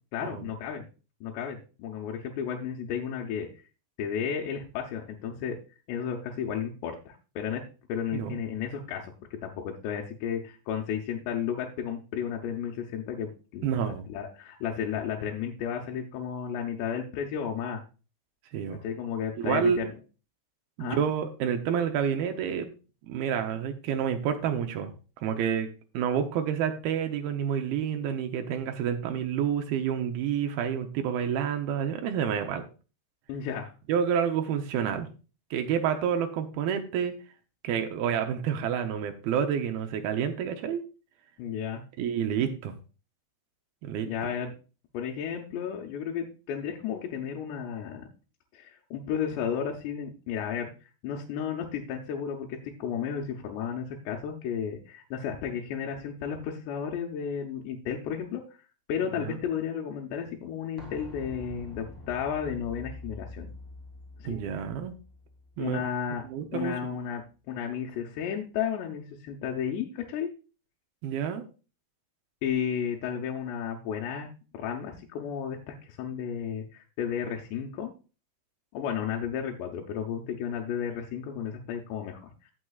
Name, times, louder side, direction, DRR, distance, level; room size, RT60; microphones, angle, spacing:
voice 1, 0.1-0.9 1.2-3.5 4.0-5.6 5.9-7.6 7.9-17.8 18.8-20.0 20.8-21.0 33.3-33.7 41.4-41.8 44.0-44.5 44.9-48.1 48.5-58.4 58.9-63.5 64.2-64.4 65.6-66.2 66.5-70.3 72.4-77.9 78.7-82.3, left 8 dB, 80° left, 0 dB, 3.0 m, -33 dB
voice 2, 13.6-14.1 18.5-18.8 19.4-19.8 20.8-22.7 23.1-24.9 25.2-25.7 25.9-32.6 33.9-35.1 35.5-37.1 37.6-40.8 42.0-42.8 43.8-44.1 59.2-59.4 64.2-65.0 65.6-65.8 66.3-66.7 71.0-71.4, right 8 dB, 80° right, 6 dB, 2.3 m, -29 dB
sound 1, 60.8-66.4 66.7-66.8, left 1 dB, 20° left, 0.5 m, -45 dB
16.5 x 6.0 x 2.4 m, 0.34 s
omnidirectional pair, 5.1 m